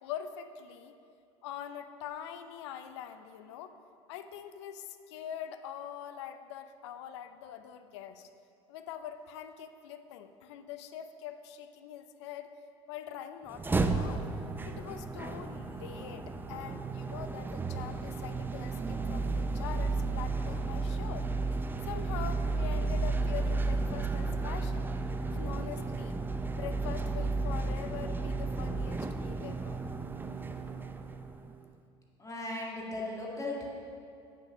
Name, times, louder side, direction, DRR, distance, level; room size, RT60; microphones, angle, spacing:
voice 1, 0.0-0.9 1.4-3.8 4.1-8.3 8.7-12.5 12.9-14.3 14.6-21.3 21.8-24.9 25.3-26.2 26.5-29.8, left 9 dB, 75° left, 9 dB, 0.6 m, -43 dB
sound 1, 13.5-31.6, right 3 dB, 15° right, 0.5 m, -33 dB
voice 2, 32.2-33.7, left 2 dB, 20° left, -3 dB, 2.0 m, -37 dB
8.3 x 6.6 x 6.1 m, 2.4 s
hypercardioid pair, 80°, 15 cm